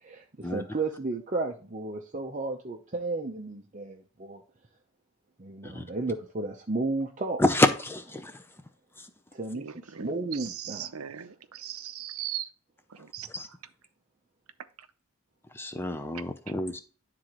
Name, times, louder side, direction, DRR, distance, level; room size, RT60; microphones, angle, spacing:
voice 1, 0.0-4.4 5.4-7.4 9.3-10.9, right 3 dB, 35° right, 2 dB, 0.7 m, -33 dB
voice 2, 7.4-8.3 13.3-13.5 15.5-16.8, left 1 dB, 10° left, 9 dB, 0.5 m, -27 dB
voice 3, 9.5-10.2 10.6-12.5 13.1-13.3, right 10 dB, 85° right, 11 dB, 0.6 m, -38 dB
11.5 x 3.8 x 3.0 m, 0.39 s
head